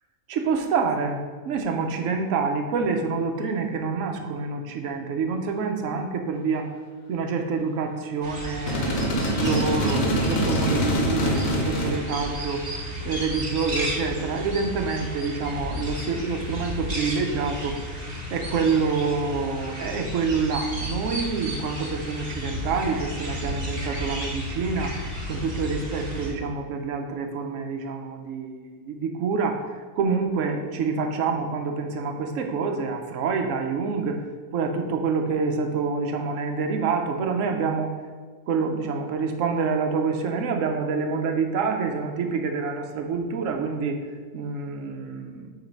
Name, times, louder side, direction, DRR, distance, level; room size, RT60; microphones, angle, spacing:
voice 1, 0.3-6.7 7.1-12.7 13.0-17.8 18.3-25.0 25.3-34.2 34.5-37.9 38.5-44.0 44.3-45.5, right 5 dB, 70° right, 3 dB, 1.1 m, -27 dB
sound 1, 8.2-26.3, equal, 30° right, 1.4 m, -33 dB
sound 2, 8.7-12.0, equal, 80° left, 1.3 m, -24 dB
7.4 x 3.2 x 5.2 m, 1.5 s
omnidirectional pair, 1.4 m